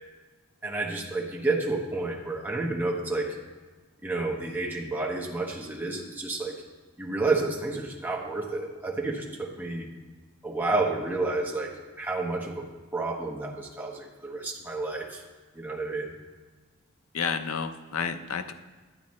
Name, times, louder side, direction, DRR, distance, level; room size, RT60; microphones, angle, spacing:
voice 1, 0.6-3.4 4.0-6.6 7.0-9.9 10.4-12.7 12.9-15.2 15.5-16.1, right 3 dB, 10° right, -2 dB, 1.0 m, -30 dB
voice 2, 17.1-18.5, left 6 dB, 75° left, 9 dB, 0.6 m, -30 dB
10.5 x 8.8 x 3.2 m, 1.3 s
head